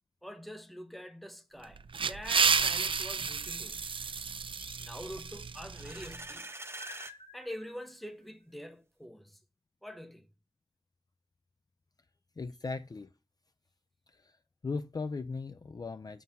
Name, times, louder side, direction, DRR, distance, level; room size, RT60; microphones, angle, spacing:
voice 1, 0.2-3.8 4.8-6.5 7.3-9.4 9.8-10.2, equal, ahead, 1.1 m, -45 dB
sound 1, 1.6-6.2, right 5 dB, 65° right, 0.4 m, -31 dB
sound 2, 3.0-3.9 4.6-5.7 6.8-8.3, left 2 dB, 75° left, 1.1 m, -54 dB
sound 3, 5.6-7.2, right 2 dB, 25° right, 0.6 m, -44 dB
voice 2, 12.4-13.1 14.1-14.3 14.6-16.2, left 4 dB, 40° left, 0.4 m, -38 dB
7.5 x 2.7 x 5.3 m
wide cardioid pair, 60°, 10 cm